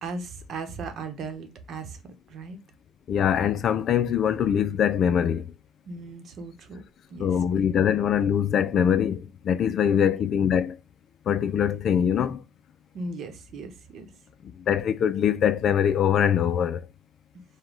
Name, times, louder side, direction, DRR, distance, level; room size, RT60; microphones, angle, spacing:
voice 1, 0.0-2.0 2.3-2.6 5.9-6.8 7.1-7.3 7.6-7.7 10.0-10.2 12.9-14.1, right 3 dB, 55° right, 0.9 m, -37 dB
voice 2, 3.1-5.4 7.2-10.8 11.3-12.4 14.6-16.9, left 8 dB, 50° left, 0.4 m, -23 dB
5.0 x 2.2 x 3.7 m
cardioid pair, 120°, 0 cm